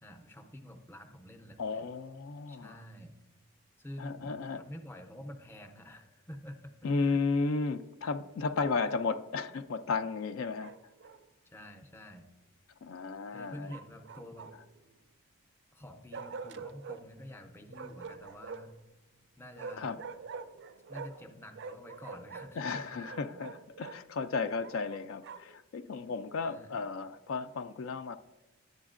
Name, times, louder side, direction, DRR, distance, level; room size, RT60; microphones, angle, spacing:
voice 1, 0.0-1.8 2.5-3.2 3.8-7.2 11.5-12.2 13.3-14.5 15.7-18.7 19.4-20.0 20.9-22.9 26.4-26.8, left 1 dB, 10° left, 5 dB, 0.5 m, -48 dB
voice 2, 1.6-2.7 4.0-4.6 6.8-10.7 12.8-13.8 19.8-20.0 22.6-28.2, left 4 dB, 65° left, 10 dB, 0.3 m, -34 dB
Bark, 10.6-11.2 13.7-14.8 16.1-17.0 17.7-18.8 19.6-21.3 21.5-24.0 24.6-25.6, right 4 dB, 50° right, 0.4 m, -45 dB
10.5 x 7.9 x 2.5 m, 1.0 s
head